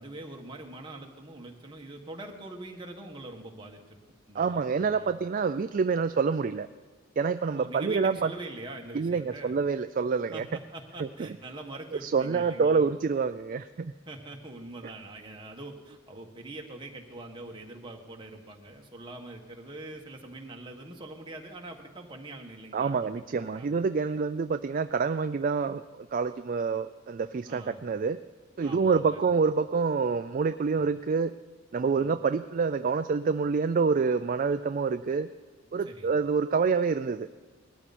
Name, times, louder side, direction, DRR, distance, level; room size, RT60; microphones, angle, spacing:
voice 1, 0.0-4.0 4.3-5.1 7.5-9.5 10.3-13.2 14.1-22.9 23.3-23.7 27.5-27.8 28.6-29.2 32.0-32.1 35.8-36.1, right 2 dB, 20° right, 1 dB, 1.6 m, -43 dB
voice 2, 4.3-6.7 7.2-8.3 8.9-10.5 11.0-11.3 12.0-13.9 22.7-28.2 28.6-31.3 31.7-35.3 35.7-37.3, right 5 dB, 40° right, 10 dB, 0.3 m, -27 dB
20.0 x 13.5 x 4.3 m, 1.4 s
head